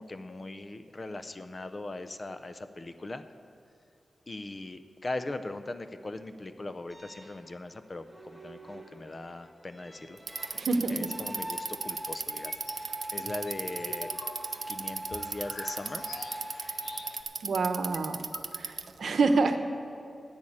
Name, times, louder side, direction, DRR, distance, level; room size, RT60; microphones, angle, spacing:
voice 1, 0.0-3.2 4.3-10.6 10.9-14.1 14.7-16.0, left 2 dB, 30° left, 10 dB, 0.6 m, -40 dB
sound 1, 6.9-17.2, right 1 dB, 5° right, 1.6 m, -44 dB
Bicycle, 10.2-19.0, right 5 dB, 55° right, 0.5 m, -36 dB
voice 2, 10.5-11.1 17.4-18.2 18.6-19.6, right 3 dB, 80° right, 8 dB, 0.9 m, -27 dB
sound 2, 12.3-12.9 13.2-17.4 17.7-17.8 17.9-18.9, left 3 dB, 70° left, 1.0 m, -47 dB
10.5 x 8.9 x 8.6 m, 2.6 s
wide cardioid pair, 140°, 0 cm